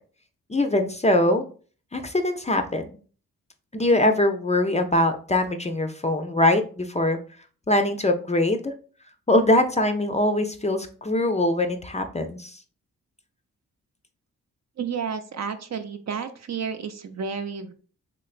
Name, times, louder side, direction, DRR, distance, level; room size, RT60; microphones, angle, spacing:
voice 1, 0.5-1.4 1.9-2.8 3.7-7.2 7.7-8.7 9.3-12.5, left 1 dB, 20° left, 6 dB, 0.4 m, -22 dB
voice 2, 14.8-17.7, right 6 dB, 50° right, 8 dB, 0.5 m, -31 dB
3.1 x 3.0 x 2.4 m, 0.40 s
supercardioid pair, 40°, 36 cm